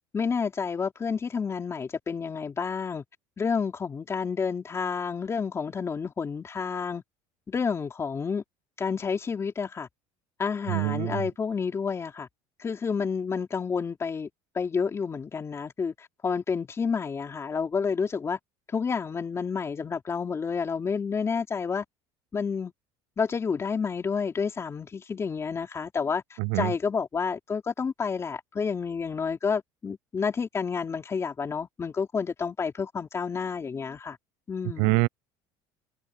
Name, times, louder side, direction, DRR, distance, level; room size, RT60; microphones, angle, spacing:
voice 1, 0.1-3.0 3.4-7.0 7.5-8.4 8.8-9.9 10.4-12.3 12.6-14.3 14.5-18.4 18.7-21.8 22.3-22.7 23.2-34.2 34.5-35.1, left 5 dB, 25° left, 3.6 m, -30 dB
voice 2, 10.7-11.2 26.4-26.7 34.8-35.1, right 26 dB, 80° right, 0.5 m, -25 dB
cardioid pair, 125°, 11 cm